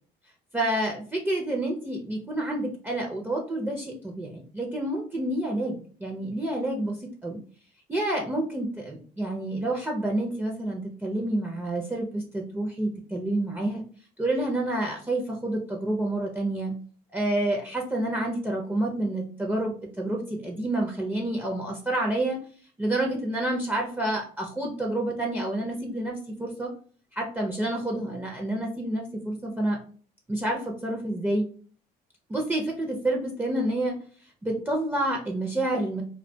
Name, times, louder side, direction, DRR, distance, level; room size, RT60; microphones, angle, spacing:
voice 1, 0.5-7.4 7.9-13.8 14.2-16.7 17.1-22.4 22.8-26.7 27.1-29.8 30.3-31.5 32.3-34.0 34.4-36.0, right 1 dB, 10° right, -1 dB, 0.5 m, -28 dB
2.2 x 2.2 x 2.6 m, 0.42 s
cardioid pair, 110°, 17 cm